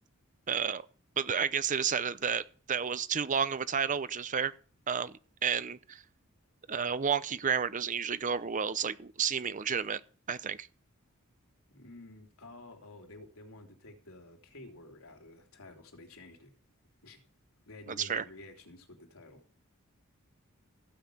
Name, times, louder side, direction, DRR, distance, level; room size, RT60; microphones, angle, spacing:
voice 1, 0.5-0.8 1.2-4.5 4.9-6.0 6.7-10.0 10.3-10.7 17.9-18.2, right 7 dB, 35° right, 0.6 m, -31 dB
voice 2, 11.7-16.5 17.0-17.2 17.7-19.4, left 2 dB, 85° left, 3.2 m, -51 dB
15.5 x 6.4 x 8.5 m
head